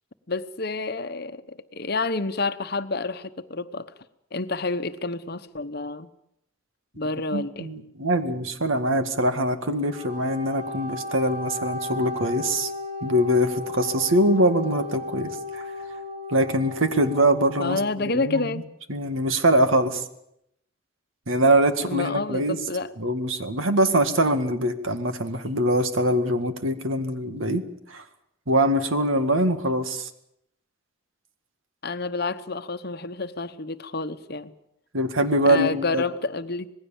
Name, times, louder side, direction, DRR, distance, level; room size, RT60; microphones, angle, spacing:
voice 1, 0.3-3.9 4.3-6.1 7.0-7.7 17.6-18.7 21.9-22.9 31.8-34.5 35.5-36.7, left 3 dB, 50° left, 1.0 m, -29 dB
voice 2, 7.3-12.7 13.0-15.6 16.3-18.6 18.9-20.0 21.3-22.6 23.0-27.6 27.9-28.0 28.5-30.1 34.9-36.0, right 1 dB, 75° right, 2.0 m, -23 dB
Wind instrument woodwind instrument, 9.9-17.8, left 2 dB, 35° right, 4.5 m, -35 dB
26.5 x 19.5 x 7.3 m
head